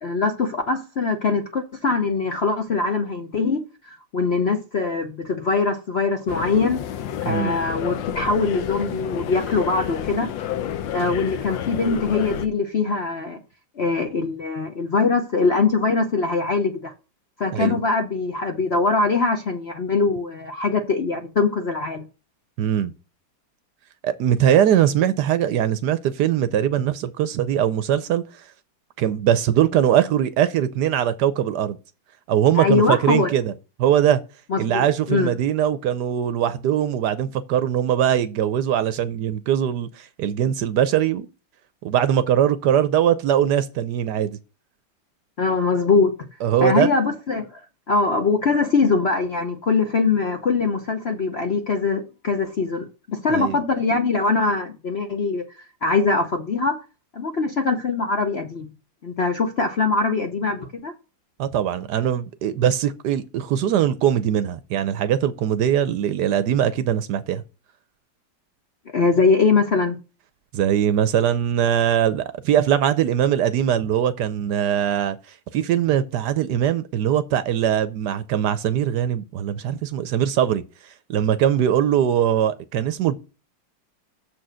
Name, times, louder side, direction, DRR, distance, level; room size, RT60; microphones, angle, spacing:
voice 1, 0.0-6.8 7.2-10.3 10.9-13.4 13.8-16.9 17.4-22.0 32.6-33.3 34.5-35.3 45.4-46.1 46.6-47.6 47.9-55.5 55.8-56.8 57.1-58.7 59.0-60.9 68.9-70.0, left 4 dB, 55° left, 0.7 m, -22 dB
sound 1, 6.3-12.5, left 10 dB, 80° left, 1.4 m, -30 dB
voice 2, 22.6-22.9 24.0-28.2 29.0-31.8 32.3-33.5 33.8-34.2 34.6-41.3 41.8-44.4 46.4-46.9 53.3-53.6 61.4-67.4 70.5-75.2 75.5-83.2, right 10 dB, 70° right, 1.1 m, -21 dB
7.0 x 4.5 x 6.2 m
omnidirectional pair, 2.0 m